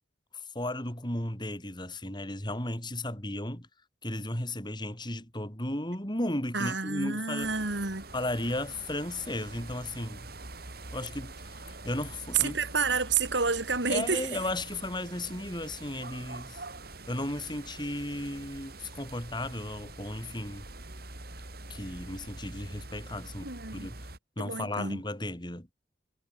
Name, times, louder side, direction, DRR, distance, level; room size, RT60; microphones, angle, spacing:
voice 1, 0.5-3.7 4.0-7.5 8.1-10.3 10.9-12.6 13.9-16.6 17.1-20.6 21.7-24.1 24.4-25.7, left 1 dB, 25° left, 5.2 m, -35 dB
voice 2, 6.5-8.0 12.3-14.3 23.4-23.9 24.4-25.0, right 5 dB, 70° right, 3.5 m, -29 dB
sound 1, 7.4-24.2, right 2 dB, 55° right, 6.8 m, -45 dB
head